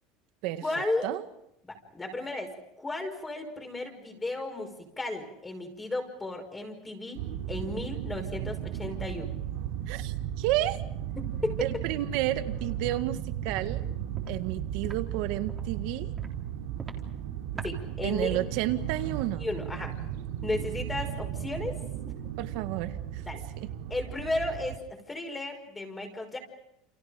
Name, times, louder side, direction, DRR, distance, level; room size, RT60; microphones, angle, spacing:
voice 1, 0.6-1.1 1.6-7.2 7.5-9.4 11.2-11.6 17.6-18.4 19.4-19.9 20.4-21.8 23.2-23.4 23.9-26.4, left 2 dB, 10° left, 4 dB, 5.5 m, -34 dB
sound 1, 7.1-24.8, right 10 dB, 80° right, 3.4 m, -35 dB
voice 2, 9.9-10.8 11.6-13.8 14.3-16.1 18.0-19.5 22.4-23.2 23.6-23.7, right 15 dB, 65° right, 9 dB, 1.8 m, -31 dB
Walk footsteps, 12.8-13.0 13.5-13.7 14.1-14.3 14.8-15.0 15.5-15.7 16.2-16.3 16.8-17.0 17.5-17.7, right 5 dB, 20° right, 3.8 m, -41 dB
29.5 x 29.0 x 5.2 m, 0.77 s
supercardioid pair, 145°, 0 cm